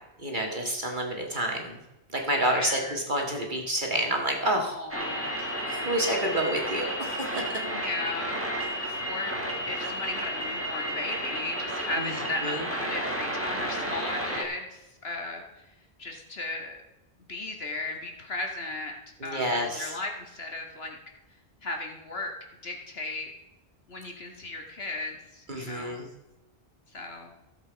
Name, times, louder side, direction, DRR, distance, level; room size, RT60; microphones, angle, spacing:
voice 1, 0.2-1.8 2.1-4.8 5.4-7.5 12.0-12.1 12.4-12.6 19.2-19.9 25.5-26.1, right 1 dB, 50° right, 1 dB, 2.0 m, -29 dB
voice 2, 2.3-3.0 4.6-5.4 7.6-8.8 9.0-9.4 9.7-15.4 16.0-16.8 17.3-21.0 21.6-22.3 22.6-23.3 23.9-26.0 26.9-27.3, left 2 dB, 75° left, 3 dB, 2.1 m, -36 dB
sound 1, 4.9-14.4, equal, 15° right, 2.3 m, -32 dB
15.0 x 7.8 x 5.2 m, 0.97 s
omnidirectional pair, 1.1 m